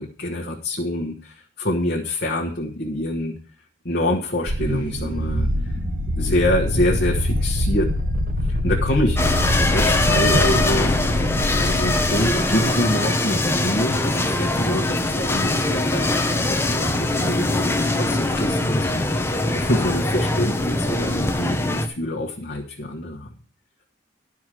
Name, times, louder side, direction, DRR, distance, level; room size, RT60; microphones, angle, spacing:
voice 1, 0.0-3.3 3.8-5.8 6.2-7.9 8.4-9.2 9.7-11.0 11.6-23.3, left 1 dB, 55° left, -2 dB, 1.3 m, -26 dB
sound 1, 4.5-12.7, left 1 dB, 45° right, 0.9 m, -24 dB
sound 2, 9.2-21.9, left 2 dB, 15° left, 0.9 m, -22 dB
11.5 x 4.8 x 7.6 m, 0.41 s
head